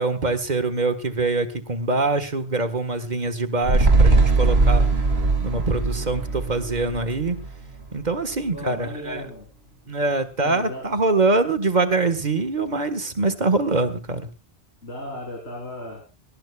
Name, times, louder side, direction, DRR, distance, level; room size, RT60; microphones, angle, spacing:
voice 1, 0.0-4.9 5.4-7.4 7.9-9.3 9.9-14.2, right 3 dB, 45° right, 9 dB, 1.7 m, -24 dB
sound 1, 3.6-8.2 8.5-8.6, right 3 dB, 75° right, 2.2 m, -20 dB
voice 2, 8.5-9.5 10.4-11.0 14.8-16.0, left 1 dB, 90° left, 0 dB, 4.0 m, -35 dB
21.5 x 18.5 x 2.4 m, 0.31 s
omnidirectional pair, 1.1 m